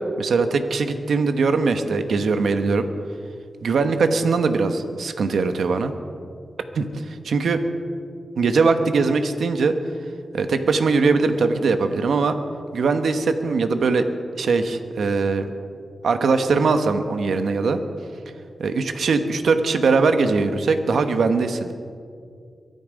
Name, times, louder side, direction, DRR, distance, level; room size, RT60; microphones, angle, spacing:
voice 1, 0.2-2.9 3.6-5.9 6.7-7.6 8.4-9.7 10.3-12.4 12.7-14.1 14.4-15.4 16.0-17.8 18.6-21.7, right 4 dB, 85° right, 8 dB, 1.1 m, -21 dB
23.0 x 9.5 x 5.2 m, 2.2 s
cardioid pair, 55°, 0 cm